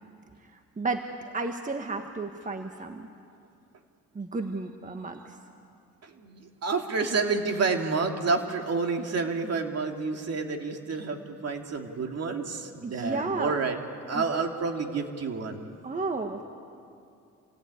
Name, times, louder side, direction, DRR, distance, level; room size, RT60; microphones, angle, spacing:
voice 1, 1.3-3.1 4.1-5.3 12.8-13.5 14.1-14.2 15.8-16.4, right 3 dB, 25° right, 5 dB, 1.5 m, -32 dB
voice 2, 6.0-13.8 14.1-15.6, right 4 dB, 55° right, 4 dB, 2.6 m, -29 dB
27.0 x 18.0 x 9.7 m, 2.5 s
cardioid pair, 90°, 30 cm